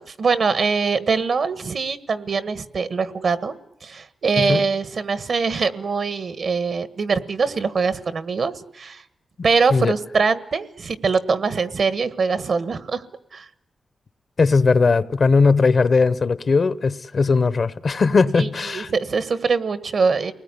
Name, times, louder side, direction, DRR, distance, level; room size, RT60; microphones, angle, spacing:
voice 1, 0.0-3.5 3.8-9.0 9.4-13.0 13.3-13.5 18.4-20.3, right 5 dB, 65° right, 1.5 m, -23 dB
voice 2, 14.4-18.9, left 4 dB, 55° left, 1.0 m, -18 dB
29.0 x 20.0 x 9.9 m
cardioid pair, 85°, 0 cm